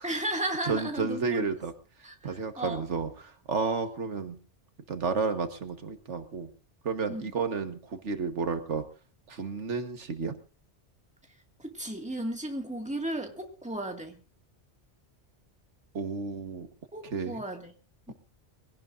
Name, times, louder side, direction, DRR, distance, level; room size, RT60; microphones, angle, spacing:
voice 1, 0.0-1.5 2.0-2.9 7.1-7.3 11.6-14.2 16.9-17.7 18.1-18.2, right 1 dB, 5° right, 2.0 m, -35 dB
voice 2, 0.7-1.7 2.2-3.1 3.5-4.4 4.9-6.5 6.8-8.8 9.3-10.3 16.0-16.7 17.1-17.4, right 4 dB, 80° right, 1.7 m, -31 dB
23.5 x 17.0 x 2.6 m
omnidirectional pair, 1.2 m